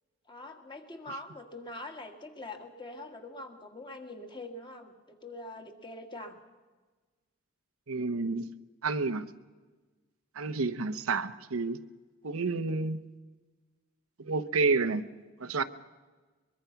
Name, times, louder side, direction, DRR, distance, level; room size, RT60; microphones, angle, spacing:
voice 1, 0.3-6.4, left 2 dB, 20° left, 5 dB, 1.8 m, -44 dB
voice 2, 7.9-8.5 8.8-9.2 10.4-11.8 12.2-13.0 14.2-15.0 15.4-15.6, right 4 dB, 85° right, 10 dB, 0.9 m, -29 dB
23.0 x 22.5 x 5.9 m, 1.3 s
head